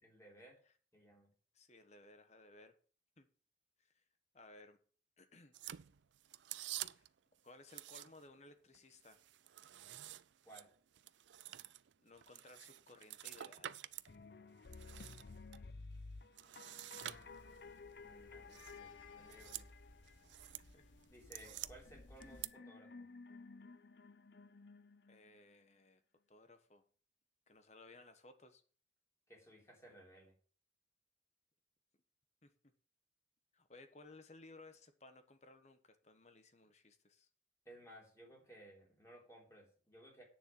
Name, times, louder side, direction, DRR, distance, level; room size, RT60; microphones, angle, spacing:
voice 1, 0.0-0.6 0.9-1.3 10.5-10.7 17.9-19.7 21.1-23.1 29.3-30.3 37.7-40.2, right 1 dB, 15° left, -2 dB, 3.7 m, -59 dB
voice 2, 1.5-2.7 3.2-3.3 3.8-4.0 4.3-4.8 5.2-5.6 6.9-7.1 7.4-9.2 12.0-13.8 20.7-20.9 25.1-26.0 26.3-26.8 27.5-28.6 32.4-32.5 33.5-37.3, left 2 dB, 35° left, 9 dB, 1.2 m, -60 dB
sound 1, 5.5-7.2 7.7-8.4 8.7-14.1 14.5-15.6 16.3-17.7 18.5-18.8 19.2-19.7 20.0-20.7 21.0-21.7 22.2-22.5, right 13 dB, 75° right, 0.4 m, -49 dB
sound 2, 14.1-20.5 21.9-25.5, left 4 dB, 55° left, 0.6 m, -55 dB
sound 3, 17.0-22.5, left 2 dB, 80° left, 1.5 m, -61 dB
9.4 x 6.9 x 7.7 m, 0.43 s
head